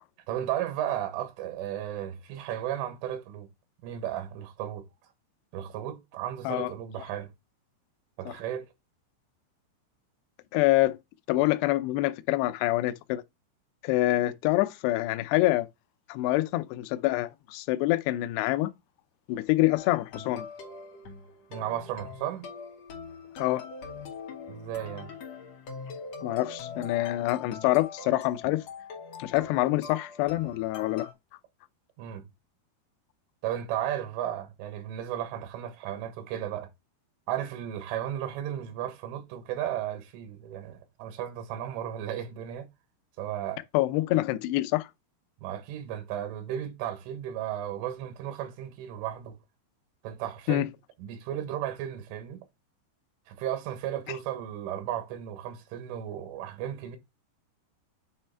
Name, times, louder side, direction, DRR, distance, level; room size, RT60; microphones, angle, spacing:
voice 1, 0.3-3.5 3.8-4.9 5.5-7.3 8.2-8.7 21.5-22.5 24.5-25.1 32.0-32.3 33.4-36.7 37.3-42.7 43.2-43.6 45.4-49.4 50.0-50.7 51.0-52.4 53.3-57.0, right 11 dB, 90° right, 3.9 m, -34 dB
voice 2, 10.5-11.0 11.3-13.2 13.8-15.7 16.1-18.7 19.3-20.5 23.4-23.6 26.2-28.6 29.2-31.1 43.7-44.9 50.5-50.7, left 17 dB, 90° left, 2.4 m, -26 dB
sound 1, 19.8-31.1, left 5 dB, 60° left, 1.8 m, -43 dB
9.0 x 3.3 x 4.3 m
omnidirectional pair, 5.4 m